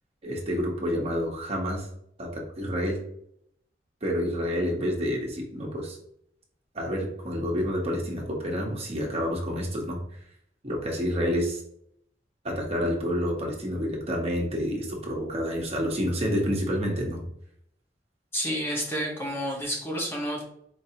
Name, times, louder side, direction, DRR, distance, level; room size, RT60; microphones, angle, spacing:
voice 1, 0.2-1.9 2.2-3.0 4.0-6.0 6.7-10.0 10.6-11.6 12.4-17.2, equal, 35° right, -1 dB, 0.9 m, -28 dB
voice 2, 18.3-20.4, equal, 15° left, -2 dB, 0.8 m, -30 dB
4.5 x 2.6 x 2.7 m, 0.71 s
head